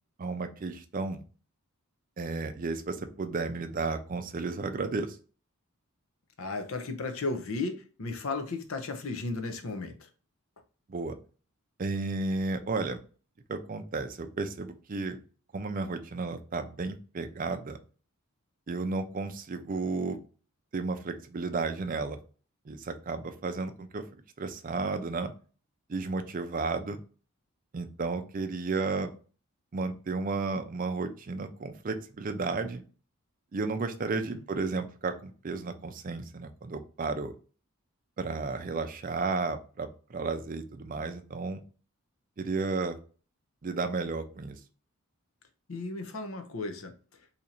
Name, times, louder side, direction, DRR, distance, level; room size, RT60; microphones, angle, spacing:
voice 1, 0.2-1.2 2.2-5.2 10.9-11.1 11.8-13.0 13.5-15.2 15.5-17.8 18.7-20.2 20.7-22.2 22.7-25.3 25.9-27.0 27.7-29.1 29.7-32.8 33.5-37.3 38.2-41.6 42.4-43.0 43.6-44.6, right 3 dB, 40° right, 0.4 m, -33 dB
voice 2, 6.4-10.1 34.3-34.4 45.7-46.9, left 3 dB, 70° left, 0.7 m, -35 dB
2.8 x 2.6 x 4.2 m
head